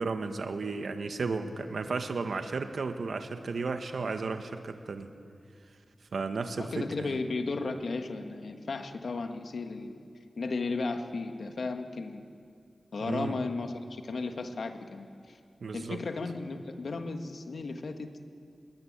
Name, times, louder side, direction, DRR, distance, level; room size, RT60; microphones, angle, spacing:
voice 1, 0.0-5.1 6.1-7.2 13.0-13.4 15.6-16.0, right 4 dB, 85° right, 7 dB, 1.6 m, -34 dB
voice 2, 6.6-10.0 10.4-12.2 12.9-15.4 15.7-18.1, left 3 dB, 85° left, 6 dB, 1.6 m, -35 dB
27.0 x 21.5 x 8.9 m, 2.4 s
wide cardioid pair, 90°, 0 cm